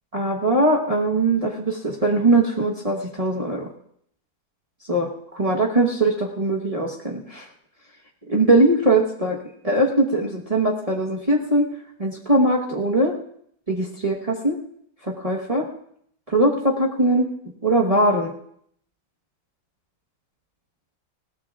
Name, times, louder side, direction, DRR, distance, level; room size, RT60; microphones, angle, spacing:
voice 1, 0.1-3.7 4.9-5.1 5.3-7.5 8.3-9.4 9.6-11.6 12.0-13.1 13.7-14.6 15.1-15.7 16.3-17.2 17.6-18.3, right 2 dB, 25° right, -2 dB, 0.9 m, -21 dB
20.5 x 16.5 x 2.4 m, 0.69 s
omnidirectional pair, 2.1 m